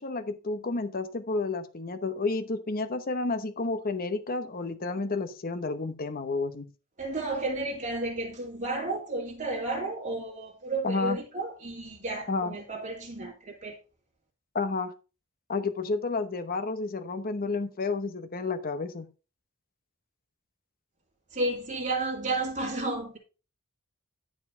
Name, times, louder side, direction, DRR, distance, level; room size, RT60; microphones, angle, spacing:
voice 1, 0.0-6.7 10.8-11.2 12.3-12.5 14.5-14.9 15.5-19.1, left 3 dB, 45° left, 0.9 m, -31 dB
voice 2, 7.0-13.8 21.3-23.2, right 2 dB, 40° right, 2.2 m, -32 dB
10.5 x 4.7 x 5.0 m
head